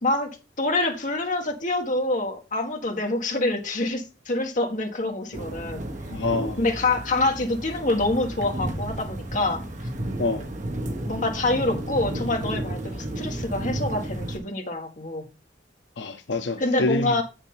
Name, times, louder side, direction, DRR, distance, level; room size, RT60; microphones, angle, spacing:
voice 1, 0.0-5.8 6.6-9.6 11.0-15.3 16.6-17.2, left 2 dB, 45° left, 1.7 m, -26 dB
sound 1, 5.3-14.4, right 1 dB, 45° right, 1.3 m, -32 dB
voice 2, 6.1-6.6 10.2-10.5 16.0-17.2, left 3 dB, 75° left, 0.7 m, -27 dB
8.1 x 6.6 x 3.8 m
head